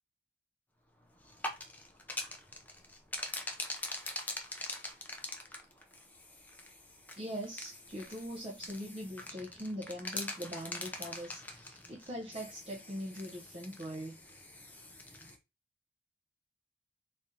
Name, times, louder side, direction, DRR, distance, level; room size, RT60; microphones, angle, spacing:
sound 1, 1.2-15.4, left 2 dB, 10° left, 0.5 m, -44 dB
voice 1, 7.2-14.2, equal, 30° right, 0.6 m, -42 dB
3.6 x 3.2 x 2.7 m
head